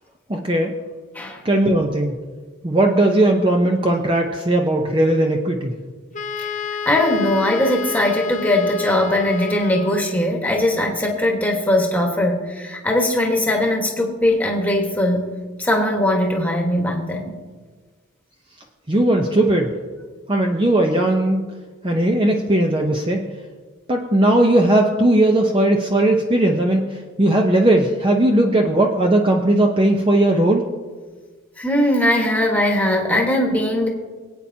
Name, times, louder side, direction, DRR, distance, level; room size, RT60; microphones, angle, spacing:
voice 1, 0.3-0.7 1.4-2.2 2.6-5.7 18.9-19.7 20.3-21.4 21.8-23.2 23.9-26.8 27.2-30.6, right 1 dB, 25° right, 1 dB, 0.7 m, -17 dB
Wind instrument woodwind instrument, 6.1-10.2, left 6 dB, 35° left, 0.5 m, -30 dB
voice 2, 6.8-15.3 15.6-17.3 31.6-33.9, left 1 dB, 5° left, 0 dB, 1.4 m, -20 dB
23.0 x 8.7 x 2.8 m, 1.4 s
head